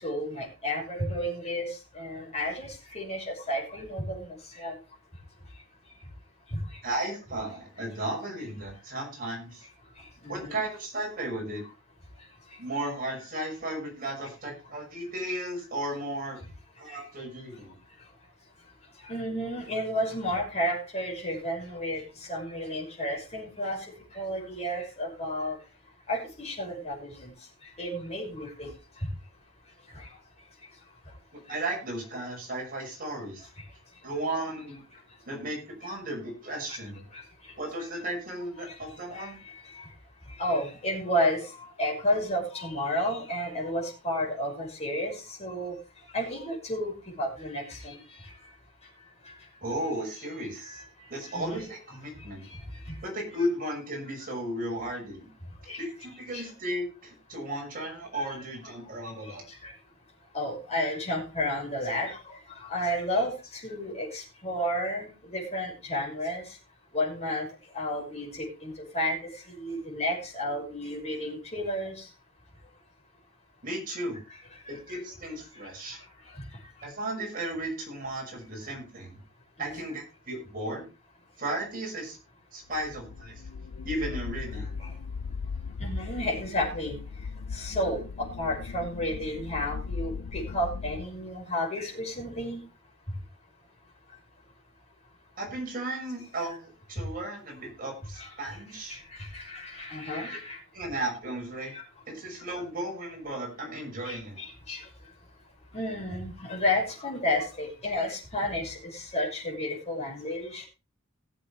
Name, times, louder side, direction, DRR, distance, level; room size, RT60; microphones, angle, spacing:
voice 1, 0.0-4.8 6.5-6.6 10.2-10.6 19.0-22.0 22.3-23.8 24.1-25.6 26.1-27.3 27.8-28.7 36.7-36.8 37.1-37.2 38.7-38.8 39.1-39.9 40.4-41.5 41.8-45.7 46.1-46.9 47.2-48.0 50.6-50.8 51.2-51.6 52.9-53.0 55.7-55.8 56.3-56.5 58.2-58.3 59.3-59.4 59.6-59.7 60.3-62.2 62.6-66.4 66.9-67.5 67.7-69.2 69.5-72.1 74.7-74.8 79.7-79.8 84.8-84.9 85.8-87.0 87.5-92.6 98.2-98.5 98.9-100.6 101.7-101.8 104.0-104.8 105.7-110.7, left 1 dB, 30° left, -2 dB, 5.6 m, -32 dB
voice 2, 6.8-9.6 10.3-11.6 12.6-16.4 16.8-17.8 31.5-33.5 34.0-34.8 35.3-37.0 37.6-39.4 49.6-50.8 51.1-52.5 53.0-55.3 55.8-59.4 73.6-74.2 74.7-76.0 76.8-79.2 79.6-80.9 81.4-82.2 82.5-83.3 83.8-84.7 95.4-99.0 100.7-101.7 102.1-104.4, right 1 dB, 45° right, -1 dB, 6.2 m, -35 dB
sound 1, 82.7-91.1, left 5 dB, 90° left, 0.5 m, -38 dB
19.0 x 7.7 x 3.4 m, 0.31 s
head